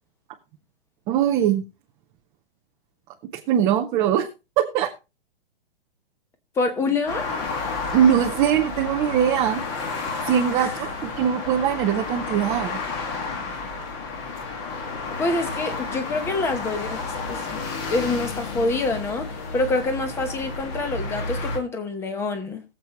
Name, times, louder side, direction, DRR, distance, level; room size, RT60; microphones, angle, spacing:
voice 1, 1.1-1.6 3.5-4.3 4.6-4.9 7.9-9.6 10.2-12.8, right 9 dB, 15° right, 0.5 m, -21 dB
voice 2, 6.6-7.3 10.6-10.7 15.2-17.0 17.3-17.4 17.9-19.3 19.5-22.6, left 3 dB, 10° left, 0.9 m, -26 dB
sound 1, 7.1-21.6, left 4 dB, 30° left, 1.8 m, -31 dB
21.5 x 7.4 x 3.0 m
hypercardioid pair, 165°, 29 cm